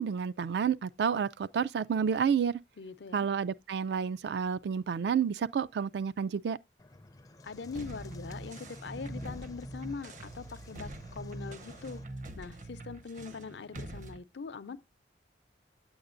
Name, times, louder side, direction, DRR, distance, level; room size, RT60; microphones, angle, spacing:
voice 1, 0.0-2.6 3.1-6.6, right 7 dB, 70° right, 0.3 m, -30 dB
voice 2, 2.8-3.3 7.4-12.0 12.4-14.8, left 4 dB, 75° left, 0.6 m, -42 dB
sound 1, 6.8-12.0, left 1 dB, 20° left, 0.4 m, -50 dB
sound 2, 7.7-14.2, right 1 dB, 45° right, 0.7 m, -44 dB
8.7 x 7.8 x 2.5 m
head